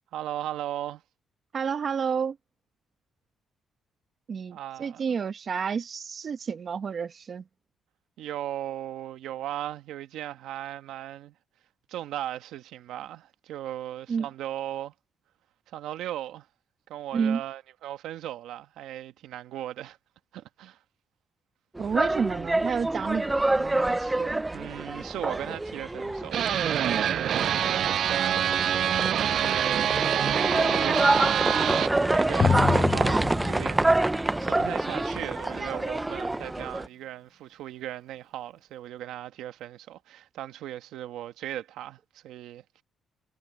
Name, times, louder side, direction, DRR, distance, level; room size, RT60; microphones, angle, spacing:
voice 1, 0.1-1.0 4.5-5.2 8.2-11.3 11.9-14.9 15.7-16.5 16.9-20.0 20.3-20.8 24.1-24.2 24.5-28.8 29.2-42.8, right 12 dB, 85° right, 1.4 m, -37 dB
voice 2, 1.5-2.4 4.3-7.4 14.1-14.3 17.1-17.4 21.8-24.4, right 6 dB, 50° right, 1.0 m, -30 dB
sound 1, 21.8-36.9, right 2 dB, 15° right, 0.5 m, -27 dB
sound 2, 26.3-31.9, right 9 dB, 65° right, 0.3 m, -25 dB
Drum, 32.4-34.8, left 6 dB, 40° left, 1.2 m, -28 dB
cardioid pair, 90°, 0 cm